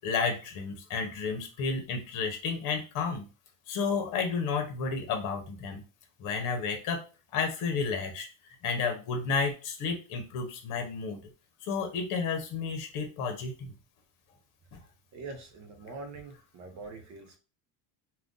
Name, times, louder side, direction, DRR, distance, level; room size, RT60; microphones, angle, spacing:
voice 1, 0.0-3.3 3.7-5.8 6.2-7.0 7.3-8.3 8.6-11.2 11.6-13.7 14.7-14.8, left 5 dB, 45° left, 4 dB, 0.8 m, -31 dB
voice 2, 15.1-17.4, right 3 dB, 40° right, 5 dB, 0.7 m, -44 dB
2.6 x 2.3 x 3.6 m, 0.33 s
cardioid pair, 155°, 43 cm